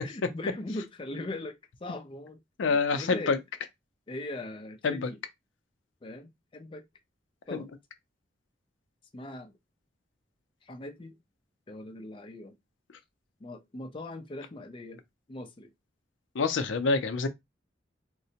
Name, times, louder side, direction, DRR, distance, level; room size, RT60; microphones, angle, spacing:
voice 1, 0.0-3.4 4.1-5.2 6.0-6.8 7.5-7.7 9.1-9.5 10.6-11.2 11.7-12.5 13.4-15.0 15.3-15.7, left 2 dB, 30° left, 0.4 m, -40 dB
voice 2, 2.6-3.4 4.8-5.1 7.5-7.6 16.3-17.3, left 4 dB, 90° left, 0.5 m, -26 dB
3.7 x 2.1 x 2.8 m
head